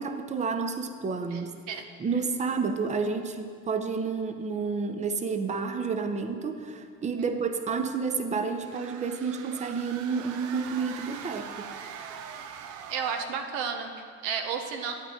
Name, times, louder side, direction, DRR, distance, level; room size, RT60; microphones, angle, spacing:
voice 1, 0.0-1.6 2.0-11.6, right 5 dB, 20° right, 7 dB, 0.6 m, -30 dB
sound 1, 8.5-13.5, right 7 dB, 60° right, 0.7 m, -42 dB
voice 2, 12.9-14.9, right 6 dB, 85° right, 5 dB, 1.0 m, -32 dB
10.0 x 8.4 x 3.6 m, 2.2 s
cardioid pair, 115°, 34 cm